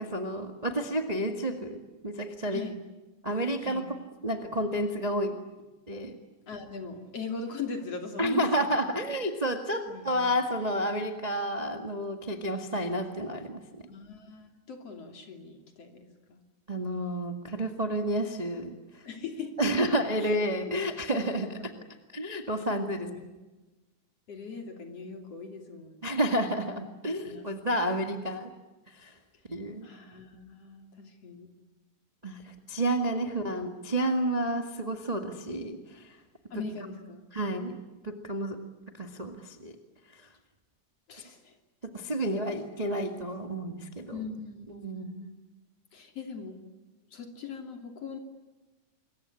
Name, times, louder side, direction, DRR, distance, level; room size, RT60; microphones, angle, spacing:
voice 1, 0.0-2.6 3.2-3.8 4.2-5.3 5.9-6.2 8.2-13.6 16.7-19.0 19.6-21.5 22.1-23.1 26.0-28.5 28.9-29.1 29.5-29.9 32.2-36.2 37.3-37.8 38.0-38.6 39.0-39.7 41.9-44.1 44.8-45.1, right 1 dB, 20° right, 5 dB, 1.3 m, -30 dB
voice 2, 6.5-8.7 9.9-10.4 13.9-16.4 19.0-19.8 20.2-20.7 21.1-21.7 22.7-23.3 24.3-26.2 27.2-27.4 29.8-31.5 33.3-33.5 36.5-37.2 41.1-41.6 44.1-45.4 45.9-46.6 47.1-48.2, left 4 dB, 50° left, 4 dB, 3.8 m, -41 dB
26.5 x 22.5 x 9.8 m, 1.1 s
omnidirectional pair, 3.5 m